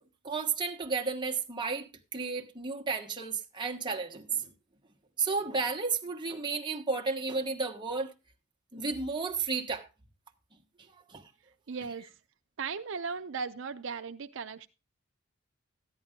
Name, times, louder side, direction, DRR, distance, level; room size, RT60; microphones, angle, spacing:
voice 1, 0.2-4.5 5.2-8.1 8.7-9.9 10.9-11.3, right 4 dB, 25° right, 1.4 m, -33 dB
voice 2, 11.7-12.1 12.6-14.7, right 5 dB, 65° right, 0.5 m, -37 dB
13.5 x 10.5 x 3.7 m
head